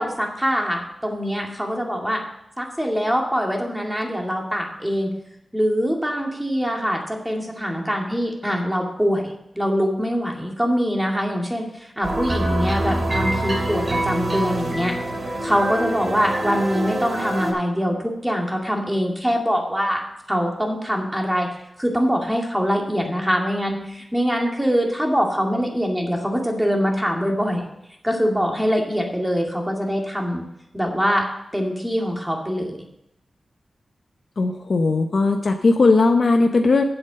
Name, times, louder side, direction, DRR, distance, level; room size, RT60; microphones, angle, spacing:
voice 1, 0.0-2.2 2.6-5.1 5.5-14.9 15.4-20.0 20.3-21.5 21.8-27.7 28.0-30.4 30.7-31.3 31.5-32.8, equal, 5° right, 1 dB, 2.2 m, -23 dB
sound 1, 12.0-17.5, right 1 dB, 40° right, 2.4 m, -25 dB
voice 2, 34.4-36.8, left 3 dB, 60° left, 4 dB, 0.8 m, -18 dB
7.9 x 7.9 x 6.5 m, 0.80 s
wide cardioid pair, 95°, 0 cm